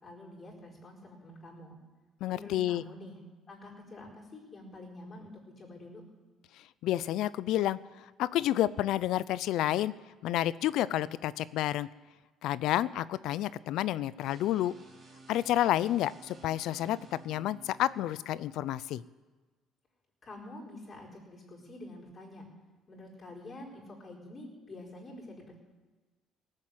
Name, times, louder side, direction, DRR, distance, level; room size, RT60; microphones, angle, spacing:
voice 1, 0.0-1.8 2.3-3.2 3.5-6.0 20.2-22.4 22.9-25.6, left 1 dB, 30° left, -3 dB, 4.7 m, -47 dB
voice 2, 2.2-2.8 6.8-7.8 8.2-9.9 10.2-11.9 12.4-14.7 15.3-17.0 17.2-19.0, left 13 dB, 70° left, 18 dB, 0.5 m, -29 dB
sound 1, 14.2-18.2, right 2 dB, 30° right, 2.6 m, -54 dB
18.5 x 7.6 x 7.7 m, 1.3 s
cardioid pair, 130°, 0 cm